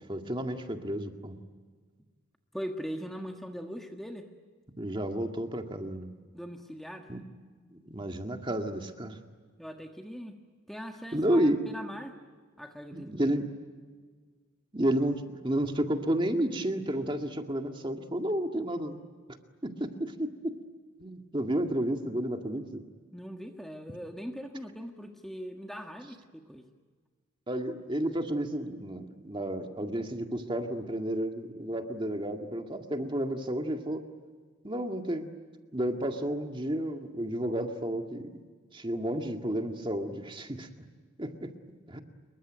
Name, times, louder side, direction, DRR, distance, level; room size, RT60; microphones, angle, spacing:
voice 1, 0.1-1.4 4.8-6.1 7.1-7.2 7.7-9.2 11.1-11.6 12.9-13.5 14.7-19.0 19.6-20.5 21.0-22.8 27.5-34.0 34.6-35.3 35.7-38.4 38.7-40.7 41.2-41.5 41.9-42.0, right 1 dB, 25° right, 5 dB, 2.0 m, -31 dB
voice 2, 2.5-4.3 6.3-7.1 9.6-10.4 10.7-12.2 12.6-13.1 23.1-26.6, equal, ahead, 3 dB, 1.5 m, -41 dB
27.0 x 23.0 x 9.2 m, 1.5 s
head